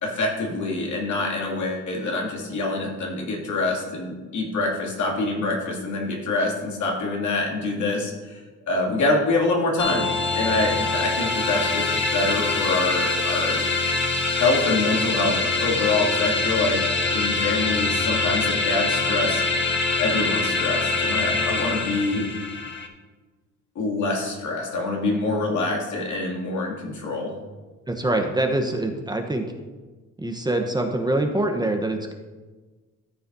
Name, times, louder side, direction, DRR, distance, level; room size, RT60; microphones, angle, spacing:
voice 1, 0.0-13.7 14.4-19.4 20.0-22.3 23.7-27.4, left 2 dB, 75° left, -1 dB, 2.5 m, -25 dB
sound 1, 9.8-22.9, left 3 dB, 40° left, 1.3 m, -24 dB
voice 2, 27.9-29.5 30.2-32.1, right 1 dB, 15° right, 4 dB, 0.9 m, -24 dB
13.5 x 6.8 x 2.7 m, 1.3 s
cardioid pair, 90°, 30 cm